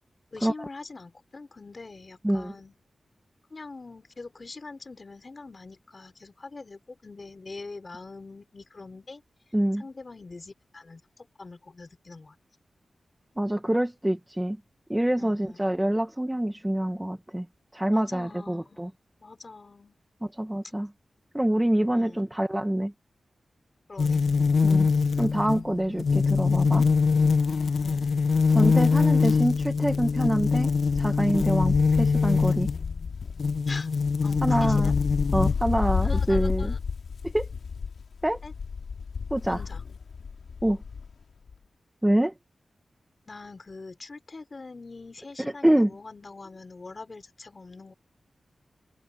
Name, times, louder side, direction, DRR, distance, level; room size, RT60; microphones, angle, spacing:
voice 1, 0.3-2.8 3.5-9.2 9.8-12.4 15.2-15.7 17.9-18.9 19.2-20.0 21.9-22.3 23.9-24.2 27.8-28.1 33.7-33.9 34.2-34.9 36.0-36.8 38.4-38.5 39.5-39.8 43.3-47.9, left 3 dB, 35° left, 4.7 m, -43 dB
voice 2, 13.4-14.6 14.9-17.5 17.7-18.9 20.2-20.9 21.3-22.9 24.6-24.9 25.2-26.9 28.5-32.7 34.4-34.9 35.3-36.7 37.2-37.5 38.2-38.4 39.3-39.6 40.6-40.8 42.0-42.3 45.4-45.9, right 1 dB, 10° right, 1.2 m, -26 dB
sound 1, 24.0-32.8 33.4-35.5, left 4 dB, 70° left, 0.7 m, -23 dB
Wind, 24.4-24.5 24.8-24.9 25.2-28.8 29.0-41.2 41.5-41.6, left 5 dB, 90° left, 2.7 m, -33 dB
wide cardioid pair, 145°, 0 cm